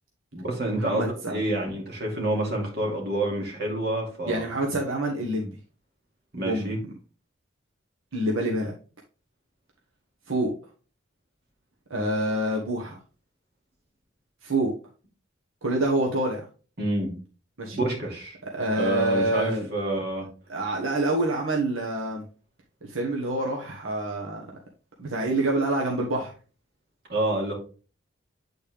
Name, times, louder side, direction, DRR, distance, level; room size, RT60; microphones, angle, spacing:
voice 1, 0.3-4.4 6.3-6.8 16.8-17.1 17.7-18.4 18.8-20.3 27.1-27.5, right 1 dB, 55° right, 2.6 m, -28 dB
voice 2, 0.8-1.4 4.2-5.5 6.4-6.7 8.1-8.7 10.3-10.5 11.9-13.0 14.4-14.7 15.6-16.4 17.6-17.8 18.5-19.7 20.5-22.2 22.8-24.5 25.0-26.3, right 1 dB, 80° right, 1.3 m, -26 dB
8.6 x 4.3 x 3.5 m
head